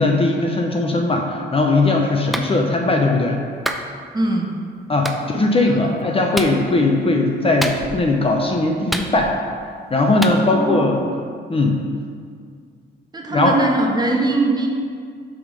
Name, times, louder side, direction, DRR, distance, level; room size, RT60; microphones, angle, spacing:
voice 1, 0.0-3.4 4.9-9.3 9.9-11.0 11.5-11.8 13.3-13.6, left 2 dB, 30° left, 1 dB, 0.7 m, -19 dB
Clapping, 2.3-2.5 3.6-3.9 5.0-5.2 6.3-6.6 7.6-8.1 8.9-9.5 10.2-10.4, equal, ahead, 0.5 m, -26 dB
voice 2, 4.1-4.5 5.6-5.9 10.4-10.9 13.1-14.7, right 2 dB, 20° right, 0 dB, 1.1 m, -21 dB
7.8 x 3.8 x 5.2 m, 2.1 s
cardioid pair, 90°, 20 cm